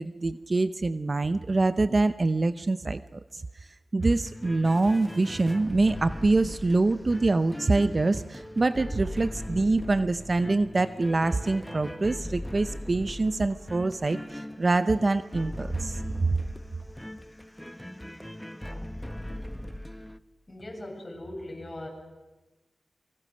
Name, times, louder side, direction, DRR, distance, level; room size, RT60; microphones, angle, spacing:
voice 1, 0.0-3.4 3.9-16.3, right 3 dB, 40° right, 12 dB, 0.7 m, -25 dB
sound 1, 4.0-20.2, left 1 dB, 5° left, 0.9 m, -39 dB
voice 2, 20.5-21.9, left 1 dB, 30° left, 1 dB, 7.8 m, -39 dB
26.5 x 23.5 x 6.5 m, 1.1 s
wide cardioid pair, 70°, 0 cm